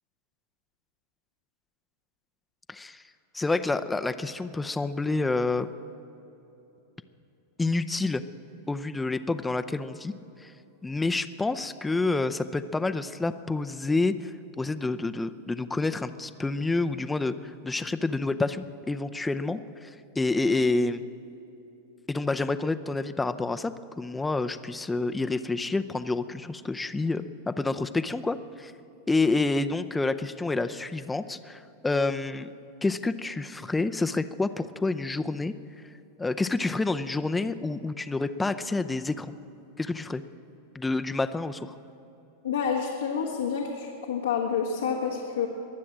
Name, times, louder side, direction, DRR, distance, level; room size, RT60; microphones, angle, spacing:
voice 1, 2.7-3.0 3.3-5.7 7.6-8.2 8.7-10.1 10.4-10.5 10.8-21.0 22.1-28.7 29.1-32.5 32.8-35.5 36.2-39.3 39.8-40.2 40.7-41.8, left 3 dB, 10° left, 11 dB, 0.6 m, -28 dB
voice 2, 42.4-45.5, left 6 dB, 90° left, -1 dB, 1.5 m, -28 dB
22.5 x 7.6 x 7.4 m, 3.0 s
hypercardioid pair, 105°, 0 cm